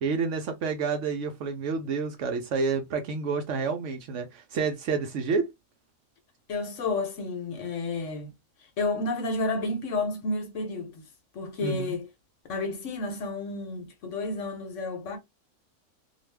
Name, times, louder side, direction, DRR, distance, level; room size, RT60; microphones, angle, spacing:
voice 1, 0.0-5.5 11.6-12.0, right 5 dB, 65° right, 0.8 m, -29 dB
voice 2, 6.5-8.3 8.6-11.0 11.3-12.1 12.5-15.2, left 3 dB, 65° left, 1.0 m, -31 dB
2.5 x 2.3 x 3.2 m
omnidirectional pair, 1.5 m